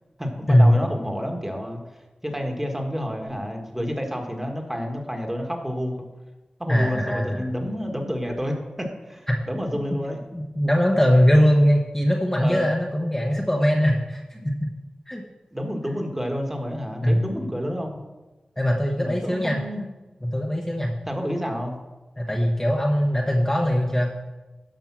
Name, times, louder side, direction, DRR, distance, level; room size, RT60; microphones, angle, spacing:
voice 1, 0.2-1.8 2.2-6.0 6.6-10.2 12.4-12.7 14.3-14.4 15.5-18.0 18.9-19.8 21.1-21.8, equal, 10° right, 2 dB, 1.7 m, -29 dB
voice 2, 6.7-7.5 10.3-14.7 15.1-15.2 17.0-17.3 18.6-19.6 20.2-20.9 22.2-24.2, equal, 15° left, -1 dB, 1.1 m, -21 dB
12.0 x 5.4 x 6.1 m, 1.1 s
wide cardioid pair, 90°, 2 cm